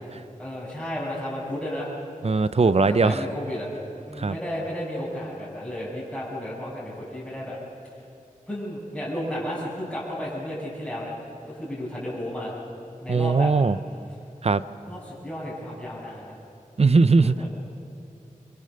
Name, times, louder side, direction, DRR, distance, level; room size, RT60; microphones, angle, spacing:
voice 1, 0.4-1.9 2.8-3.7 4.1-7.6 8.5-11.1 11.5-12.5 13.0-13.5 14.9-16.4 17.2-17.5, equal, 5° left, -10 dB, 5.8 m, -33 dB
voice 2, 2.2-3.2 4.2-4.3 13.1-13.8 14.4-14.6 16.8-17.4, right 4 dB, 50° right, 14 dB, 0.6 m, -19 dB
24.5 x 23.0 x 6.8 m, 2.5 s
wide cardioid pair, 80°, 14 cm